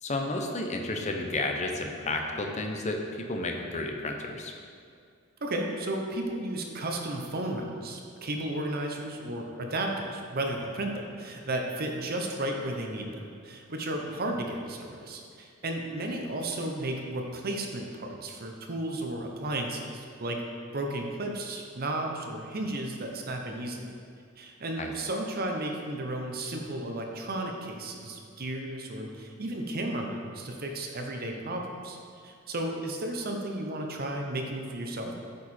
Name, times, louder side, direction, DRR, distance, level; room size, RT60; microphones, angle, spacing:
voice 1, 0.0-4.5 24.8-24.9, left 2 dB, 35° left, 3 dB, 0.6 m, -32 dB
voice 2, 5.4-20.4 20.7-23.9 24.4-32.0 32.2-35.1, right 1 dB, 50° right, 2 dB, 0.8 m, -33 dB
8.3 x 4.8 x 4.3 m, 2.3 s
head